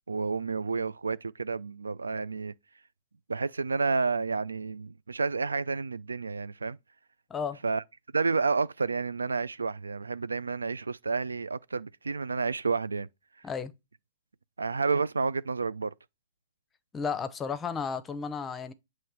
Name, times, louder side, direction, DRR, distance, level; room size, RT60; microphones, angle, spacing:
voice 1, 0.1-2.5 3.3-6.8 7.6-7.8 8.1-13.1 14.6-15.9, right 4 dB, 85° right, 0.3 m, -30 dB
voice 2, 16.9-18.7, left 6 dB, 15° left, 0.7 m, -33 dB
7.7 x 3.1 x 6.1 m
hypercardioid pair, 120°, 0 cm